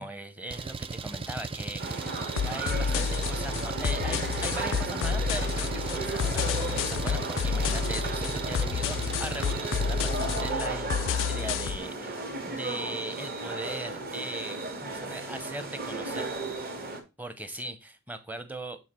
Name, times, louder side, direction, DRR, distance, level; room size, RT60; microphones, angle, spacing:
voice 1, 0.0-2.1 2.4-16.3 17.2-18.8, right 1 dB, 10° right, 10 dB, 0.8 m, -39 dB
Engine, 0.5-10.5, right 4 dB, 25° right, 0.3 m, -37 dB
sound 1, 1.8-17.0, right 2 dB, 45° right, 1.6 m, -35 dB
sound 2, 2.4-11.8, left 7 dB, 60° left, 0.3 m, -30 dB
7.1 x 4.0 x 4.4 m, 0.26 s
head